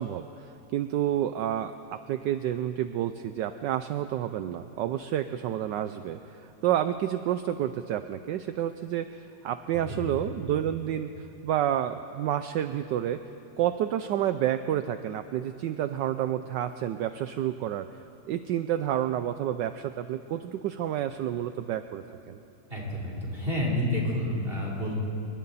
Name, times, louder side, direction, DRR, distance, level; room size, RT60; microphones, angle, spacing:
voice 1, 0.0-13.2 13.6-17.9 18.3-22.4, right 11 dB, 70° right, 10 dB, 1.1 m, -29 dB
voice 2, 22.7-25.0, left 1 dB, 25° right, -3 dB, 3.9 m, -29 dB
27.0 x 23.5 x 4.2 m, 2.8 s
omnidirectional pair, 2.2 m